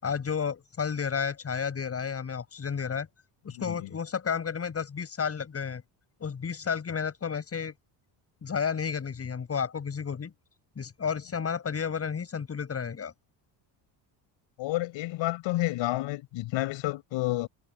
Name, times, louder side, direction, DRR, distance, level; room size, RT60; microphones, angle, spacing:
voice 1, 0.0-3.1 3.4-5.8 6.2-7.7 8.4-10.3 10.8-13.1, left 6 dB, 30° left, 7.1 m, -32 dB
voice 2, 3.5-3.9 14.6-17.5, left 18 dB, 75° left, 5.3 m, -30 dB
cardioid pair, 120°, 46 cm